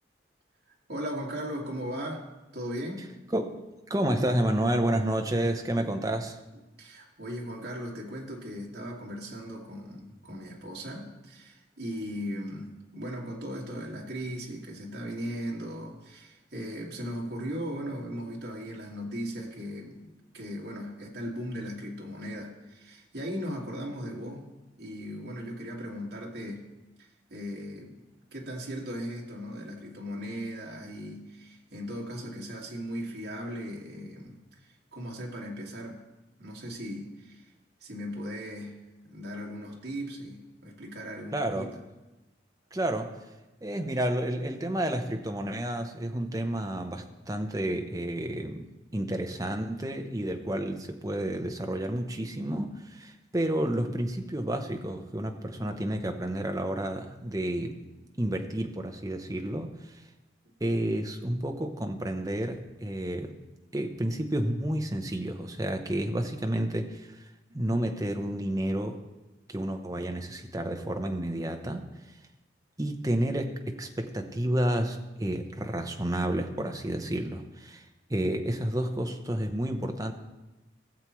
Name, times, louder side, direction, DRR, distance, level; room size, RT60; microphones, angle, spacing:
voice 1, 0.9-3.1 5.8-5.9 6.8-24.4 24.8-26.7 27.0-28.0 28.3-34.4 34.9-36.0 36.4-37.4 37.8-41.8 43.7-44.0, equal, 65° right, -2 dB, 2.1 m, -38 dB
voice 2, 3.9-6.4 41.3-41.7 42.7-43.2 43.6-57.8 58.2-60.0 60.6-63.3 63.7-67.2 67.5-69.0 69.5-71.9 72.8-77.8 78.1-80.1, right 1 dB, 20° right, 4 dB, 0.8 m, -30 dB
17.0 x 7.3 x 3.1 m, 1.0 s
head